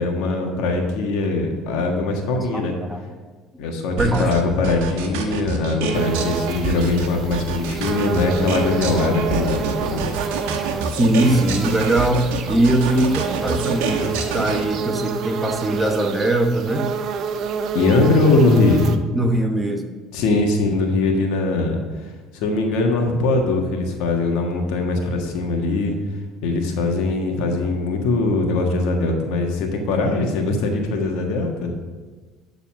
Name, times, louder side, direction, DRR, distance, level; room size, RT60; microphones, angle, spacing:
voice 1, 0.0-2.7 3.6-10.1 17.7-18.8 20.1-26.0 26.4-31.7, left 3 dB, 70° left, 2 dB, 1.5 m, -21 dB
voice 2, 2.5-3.0 4.0-4.4 11.0-16.9 19.1-19.9, right 1 dB, 10° right, 4 dB, 1.1 m, -21 dB
sound 1, 4.0-14.6, right 5 dB, 80° right, 1.0 m, -27 dB
sound 2, 5.9-19.0, right 6 dB, 55° right, 0.6 m, -29 dB
11.5 x 4.0 x 6.0 m, 1.4 s
supercardioid pair, 80°, 0 cm